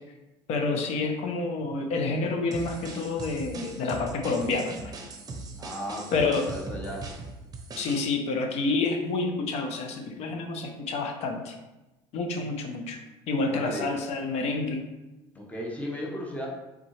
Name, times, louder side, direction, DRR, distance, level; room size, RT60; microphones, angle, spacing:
voice 1, 0.5-4.9 6.1-6.5 7.8-11.5 12.1-14.9, left 3 dB, 60° left, 4 dB, 0.7 m, -28 dB
sound 1, 2.5-8.1, right 3 dB, 30° right, 0.7 m, -40 dB
voice 2, 5.6-7.1 13.4-13.9 15.3-16.5, equal, 10° left, -2 dB, 0.9 m, -35 dB
3.9 x 3.6 x 3.2 m, 1.0 s
supercardioid pair, 90°, 12 cm